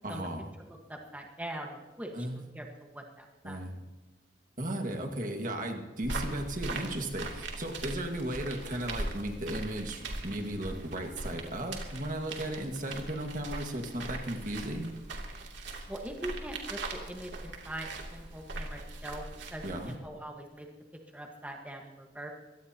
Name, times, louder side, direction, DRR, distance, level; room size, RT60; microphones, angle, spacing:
voice 1, 0.0-0.5 2.1-2.4 3.4-3.8 4.6-14.9 19.6-20.0, right 1 dB, 45° right, 3 dB, 1.8 m, -35 dB
voice 2, 0.9-3.6 15.9-19.2 19.5-20.7 21.1-22.3, right 1 dB, 10° right, 1 dB, 1.5 m, -42 dB
sound 1, 6.0-20.0, right 2 dB, 85° right, 2.8 m, -40 dB
24.0 x 17.5 x 2.9 m, 1.2 s
head